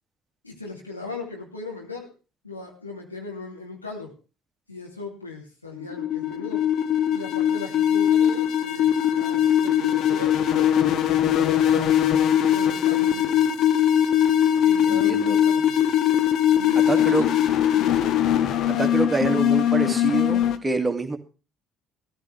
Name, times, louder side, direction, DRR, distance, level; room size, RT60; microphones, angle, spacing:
voice 1, 0.4-2.1 2.4-4.1 4.7-6.6 7.1-11.8 12.5-13.5 14.6-15.8 16.5-18.0, left 3 dB, 90° left, -2 dB, 3.2 m, -38 dB
sound 1, 5.8-20.6, left 10 dB, 50° left, 1.2 m, -21 dB
voice 2, 14.8-15.4 16.8-17.3 18.7-21.2, right 3 dB, 15° right, 5 dB, 2.4 m, -26 dB
17.0 x 14.0 x 3.4 m, 0.34 s
figure-of-eight pair, 55°, 0 cm